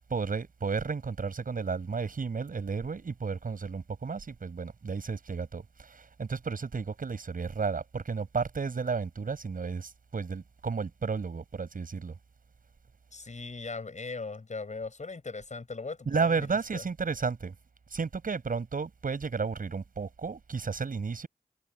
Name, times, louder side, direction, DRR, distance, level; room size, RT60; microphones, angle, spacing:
voice 1, 0.1-12.1 16.1-17.5 17.9-21.3, right 5 dB, 70° right, 7.9 m, -32 dB
voice 2, 13.1-16.8, left 3 dB, 55° left, 7.8 m, -39 dB
cardioid pair, 45°, 15 cm